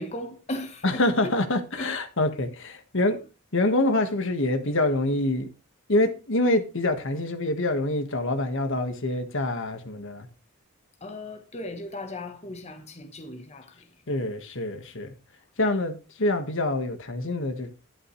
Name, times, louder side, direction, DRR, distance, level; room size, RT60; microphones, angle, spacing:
voice 1, 0.0-1.1 1.7-2.0 11.0-14.0, left 1 dB, 30° left, 1.2 m, -37 dB
voice 2, 0.8-3.2 3.5-5.5 5.9-10.3 14.1-15.1 15.6-17.7, left 2 dB, 60° left, 1.6 m, -26 dB
11.5 x 11.0 x 3.2 m
head